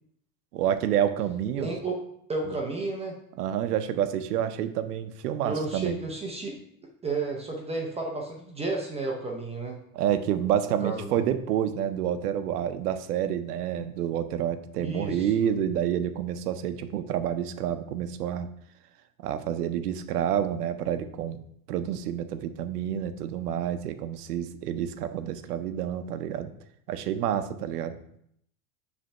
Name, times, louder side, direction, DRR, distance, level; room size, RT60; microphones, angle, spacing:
voice 1, 0.5-1.8 3.4-6.0 9.9-18.5 19.2-21.4 21.7-26.5 26.9-28.2, right 10 dB, 90° right, 11 dB, 0.7 m, -28 dB
voice 2, 1.6-2.0 2.3-3.2 5.4-6.6 6.8-9.8 10.8-11.2 14.8-15.3, right 3 dB, 15° right, 0 dB, 0.6 m, -32 dB
5.1 x 3.4 x 5.4 m, 0.71 s
supercardioid pair, 120°, 45 cm